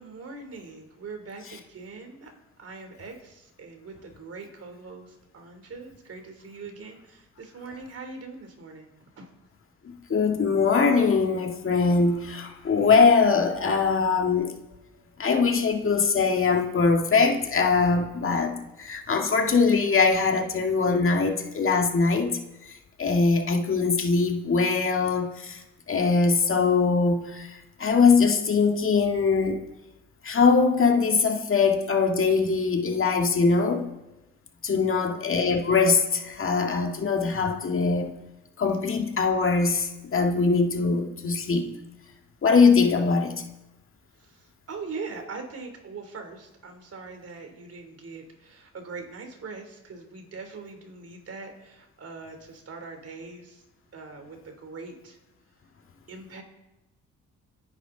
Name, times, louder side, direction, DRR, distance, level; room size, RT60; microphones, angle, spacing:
voice 1, 0.0-2.3 2.6-8.9 9.2-9.3 34.7-35.1 44.2-53.6 53.9-55.2 56.1-56.4, right 4 dB, 50° right, 5 dB, 3.5 m, -42 dB
voice 2, 9.9-14.5 15.2-22.4 23.0-25.6 25.9-29.6 30.2-33.9 34.6-38.1 38.6-41.7 42.4-43.4, left 4 dB, 45° left, 3 dB, 2.0 m, -22 dB
26.5 x 10.0 x 4.0 m, 0.99 s
cardioid pair, 90°, 30 cm